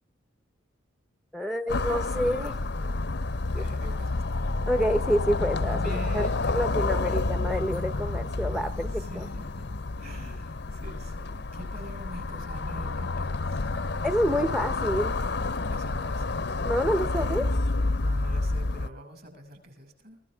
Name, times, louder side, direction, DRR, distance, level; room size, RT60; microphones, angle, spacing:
voice 1, 1.3-2.6 3.5-3.6 4.7-5.8 6.1-6.3 6.5-9.3 14.0-15.1 16.6-17.5, equal, ahead, 9 dB, 0.7 m, -27 dB
sound 1, 1.7-18.9, left 3 dB, 55° left, 0.7 m, -29 dB
voice 2, 3.5-4.5 5.8-6.8 7.1-7.3 8.9-9.7 10.0-13.7 15.7-16.4 17.9-20.2, equal, 50° right, 5 dB, 5.8 m, -45 dB
24.5 x 15.5 x 3.5 m, 0.39 s
head